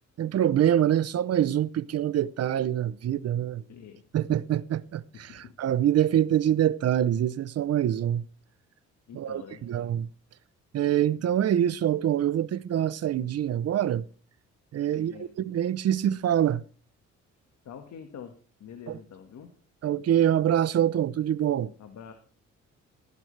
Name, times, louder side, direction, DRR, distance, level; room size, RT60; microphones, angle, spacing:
voice 1, 0.2-3.6 4.1-8.3 9.1-10.1 10.7-14.0 14.7-16.6 18.9-19.0 19.8-21.7, right 10 dB, 55° right, 0.7 m, -25 dB
voice 2, 3.7-4.1 5.1-5.5 9.1-9.8 14.9-15.4 17.6-19.6 21.8-22.1, left 7 dB, 65° left, 1.7 m, -46 dB
15.5 x 11.0 x 3.3 m
cardioid pair, 90°, 30 cm